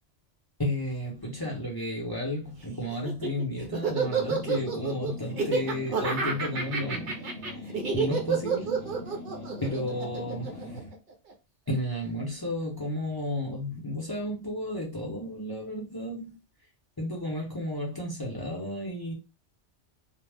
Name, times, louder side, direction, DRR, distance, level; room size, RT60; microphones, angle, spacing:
voice 1, 0.6-7.2 7.5-7.7 7.9-8.9 9.6-10.8 11.7-16.3 17.0-19.1, left 1 dB, 25° left, 0.6 m, -33 dB
Laughter, 2.9-11.3, right 5 dB, 55° right, 0.7 m, -29 dB
sound 1, 3.9-11.0, left 1 dB, 50° left, 1.0 m, -42 dB
2.3 x 2.0 x 3.4 m
omnidirectional pair, 1.2 m